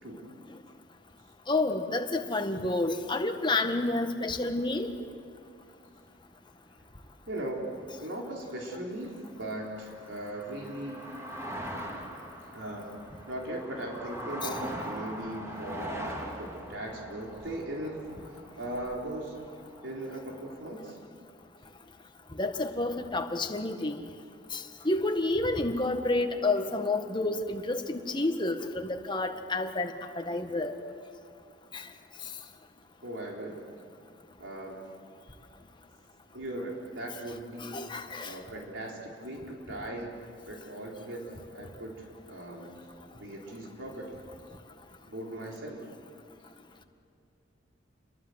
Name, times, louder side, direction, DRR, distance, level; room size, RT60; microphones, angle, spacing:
voice 1, 0.0-0.4 7.3-7.6 8.0-11.0 12.5-13.0 13.3-19.5 19.8-21.0 33.0-33.7 34.4-34.9 36.3-42.8 43.1-44.2 45.1-45.9, right 1 dB, 75° right, -1 dB, 4.1 m, -39 dB
voice 2, 1.5-4.9 22.4-24.0 24.5-30.7 31.7-31.9 37.6-38.3, left 2 dB, 25° left, 5 dB, 1.7 m, -29 dB
sound 1, 9.1-20.7, equal, 15° right, 3.4 m, -42 dB
29.5 x 22.5 x 8.1 m, 2.4 s
head